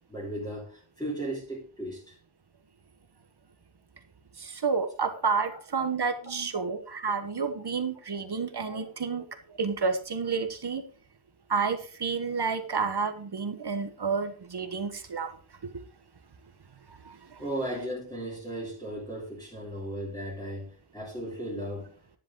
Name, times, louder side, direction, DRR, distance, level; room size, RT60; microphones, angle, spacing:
voice 1, 0.1-2.2 17.4-21.9, right 1 dB, 10° left, -5 dB, 3.3 m, -36 dB
voice 2, 4.4-10.8 11.5-15.4 15.6-15.8 16.9-17.4, right 5 dB, 55° right, 8 dB, 1.2 m, -30 dB
10.5 x 10.5 x 3.8 m, 0.41 s
wide cardioid pair, 110°, 48 cm